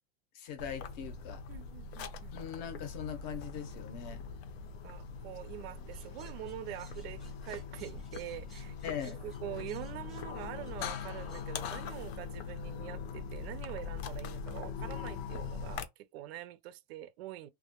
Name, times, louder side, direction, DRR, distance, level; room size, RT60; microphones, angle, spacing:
voice 1, 0.3-1.4 2.3-4.2 8.8-9.2, left 8 dB, 45° left, 0.6 m, -41 dB
sound 1, 0.6-15.9, left 5 dB, 90° left, 0.6 m, -42 dB
voice 2, 1.5-2.4 4.8-17.5, right 13 dB, 80° right, 0.5 m, -45 dB
sound 2, 5.9-11.8, right 1 dB, ahead, 0.6 m, -61 dB
2.1 x 2.1 x 2.9 m
supercardioid pair, 180°, 30 cm